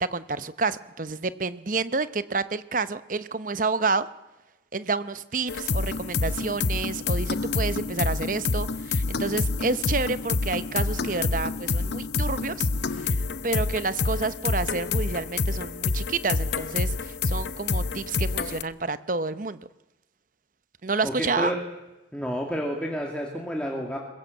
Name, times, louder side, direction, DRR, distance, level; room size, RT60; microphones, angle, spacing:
voice 1, 0.0-4.1 4.7-12.7 13.0-19.6 20.8-21.5, right 4 dB, 45° right, 14 dB, 0.9 m, -29 dB
sound 1, 5.5-18.6, left 3 dB, 65° left, 0.8 m, -27 dB
voice 2, 21.0-21.6 22.1-24.0, equal, 5° left, -1 dB, 2.4 m, -30 dB
22.0 x 21.0 x 7.9 m, 1.0 s
head